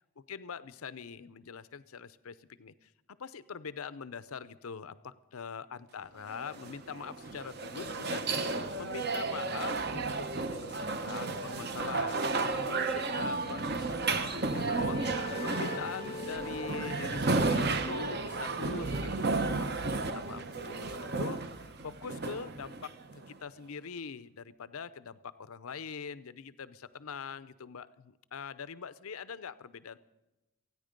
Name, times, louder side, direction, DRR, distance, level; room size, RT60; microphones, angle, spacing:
voice 1, 0.2-30.0, left 6 dB, 80° left, 16 dB, 0.6 m, -43 dB
sound 1, 6.3-23.3, right 3 dB, 50° right, 0.9 m, -33 dB
sound 2, 13.9-19.3, left 6 dB, 35° left, 0.5 m, -45 dB
27.5 x 9.7 x 5.2 m, 1.0 s
head